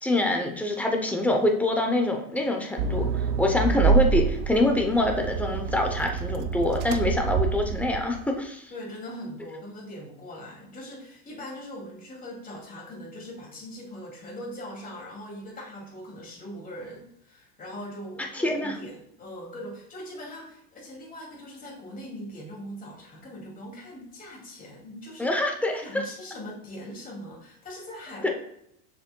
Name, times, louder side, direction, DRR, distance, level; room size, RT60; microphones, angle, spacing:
voice 1, 0.0-8.7 18.3-18.7 25.2-26.0 28.2-28.3, left 2 dB, 5° left, 2 dB, 0.6 m, -25 dB
Accelerating revving vroom, 2.8-8.2, right 6 dB, 85° right, 0.8 m, -26 dB
voice 2, 8.7-25.4 25.8-28.3, equal, 20° left, -3 dB, 2.4 m, -41 dB
7.0 x 6.6 x 2.2 m, 0.76 s
supercardioid pair, 150°, 43 cm